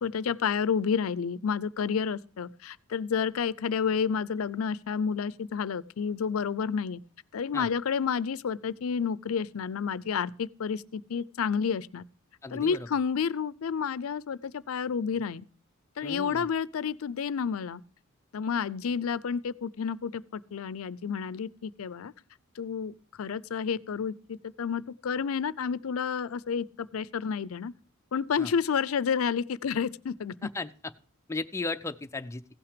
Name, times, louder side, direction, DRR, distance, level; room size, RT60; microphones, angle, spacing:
voice 1, 0.0-7.0 7.3-12.1 12.5-15.5 16.0-17.8 18.3-22.1 22.6-27.7 28.1-30.5, left 6 dB, 75° left, 0.4 m, -30 dB
voice 2, 12.4-12.9 16.0-16.5 28.4-28.5 30.4-30.7 31.3-32.4, left 3 dB, 15° left, 0.4 m, -35 dB
16.0 x 5.8 x 5.0 m
head